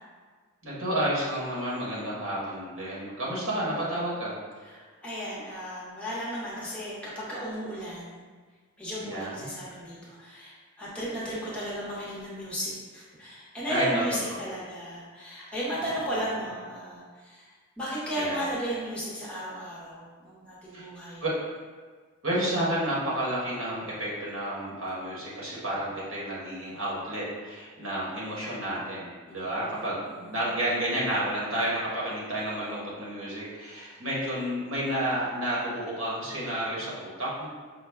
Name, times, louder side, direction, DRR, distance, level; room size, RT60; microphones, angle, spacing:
voice 1, 0.6-4.3 9.0-9.5 13.7-14.0 14.3-14.4 15.8-15.9 18.1-18.4 20.7-20.9 21.2-21.3 22.2-30.0 30.3-37.5, right 1 dB, 65° right, -6 dB, 1.3 m, -31 dB
voice 2, 4.6-8.2 8.8-21.2 29.3-30.3, equal, 5° left, -8 dB, 0.8 m, -35 dB
5.6 x 2.2 x 3.4 m, 1.5 s
head